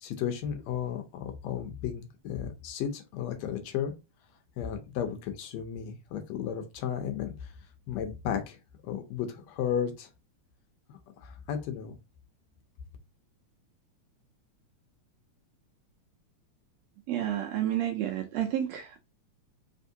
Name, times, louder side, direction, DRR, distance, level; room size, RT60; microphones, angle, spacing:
voice 1, 0.0-3.9 4.6-7.5 7.9-8.6 8.8-10.1 10.9-12.0, left 8 dB, 75° left, 1.7 m, -34 dB
voice 2, 17.1-19.0, right 11 dB, 80° right, 1.6 m, -30 dB
4.2 x 3.5 x 2.6 m
omnidirectional pair, 3.4 m